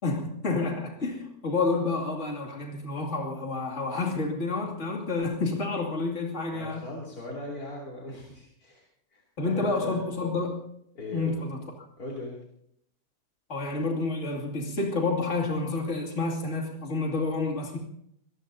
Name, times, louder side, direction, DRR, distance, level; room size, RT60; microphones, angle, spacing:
voice 1, 0.0-6.8 9.4-10.7 11.1-11.6 13.5-17.8, left 3 dB, 50° left, -1 dB, 2.9 m, -29 dB
voice 2, 6.5-10.0 10.9-11.4 12.0-12.4, left 2 dB, 80° left, -4 dB, 3.4 m, -39 dB
25.5 x 18.5 x 2.7 m, 0.72 s
omnidirectional pair, 1.6 m